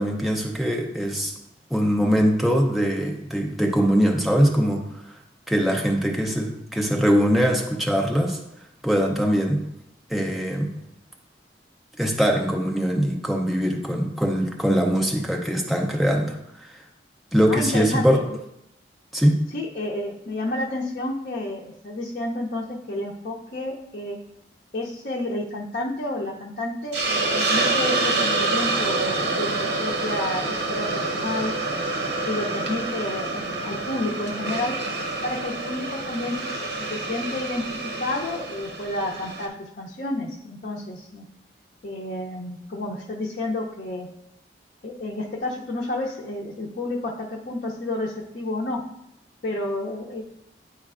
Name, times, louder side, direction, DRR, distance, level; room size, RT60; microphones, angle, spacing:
voice 1, 0.0-1.3 1.7-5.2 5.5-8.4 8.8-9.6 10.1-10.7 12.0-16.8 17.3-18.2 19.1-19.5, equal, ahead, 0 dB, 0.6 m, -22 dB
voice 2, 17.5-18.4 19.5-24.2 24.7-31.5 32.2-34.7 35.2-36.6 36.9-41.3 41.8-44.1 44.8-48.8 49.4-50.2, left 2 dB, 55° left, -3 dB, 0.6 m, -30 dB
Hiss, 26.9-39.5, right 3 dB, 75° right, 1.0 m, -27 dB
9.6 x 4.3 x 2.5 m, 0.80 s
head